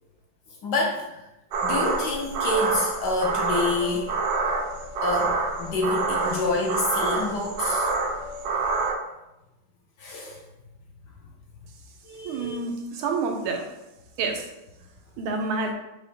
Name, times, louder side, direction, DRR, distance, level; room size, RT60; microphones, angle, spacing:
voice 1, 0.6-1.2 1.6-4.1 5.0-7.9 10.0-10.4 12.0-12.6, left 2 dB, 70° left, -1 dB, 1.1 m, -27 dB
sound 1, 1.5-8.9, right 3 dB, 70° right, 1.0 m, -27 dB
voice 2, 12.2-13.6 14.2-14.5 15.2-15.7, right 4 dB, 85° right, 3 dB, 1.5 m, -28 dB
5.1 x 2.1 x 4.2 m, 0.94 s
omnidirectional pair, 2.3 m